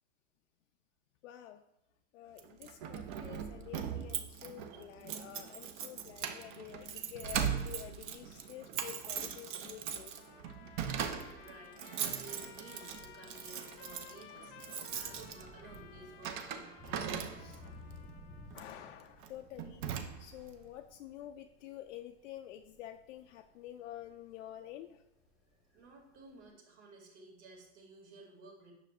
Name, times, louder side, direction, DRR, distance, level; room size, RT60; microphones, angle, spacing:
voice 1, 1.2-1.6 2.1-10.1 17.4-17.6 18.5-19.8 20.2-25.0, left 12 dB, 80° left, 5 dB, 0.5 m, -49 dB
Keys jangling, 2.4-17.7 18.5-18.8 19.2-19.3 19.6-20.5, right 8 dB, 40° right, 0.6 m, -40 dB
Trumpet, 10.0-18.8, left 9 dB, 45° left, 0.7 m, -56 dB
voice 2, 10.9-17.1 25.7-28.7, right 3 dB, 70° right, 0 dB, 2.4 m, -54 dB
Thunder / Rain, 14.2-26.5, left 1 dB, ahead, 1.1 m, -56 dB
9.2 x 6.3 x 2.4 m, 0.85 s
supercardioid pair, 160°, 36 cm